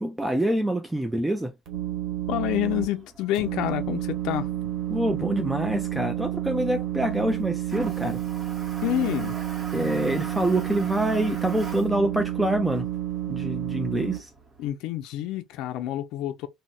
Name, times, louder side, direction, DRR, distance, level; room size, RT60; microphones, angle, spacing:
voice 1, 0.0-1.5 4.9-8.2 9.7-12.9 13.3-14.3, right 1 dB, 5° right, 0.3 m, -26 dB
sound 1, 1.7-2.8 3.3-14.2, right 12 dB, 60° right, 1.1 m, -30 dB
voice 2, 2.3-4.5 8.8-9.4 14.6-16.5, left 13 dB, 70° left, 0.4 m, -28 dB
Toilet flush, 2.5-14.7, right 2 dB, 25° right, 0.8 m, -45 dB
3.9 x 2.0 x 2.3 m
cardioid pair, 155°, 0 cm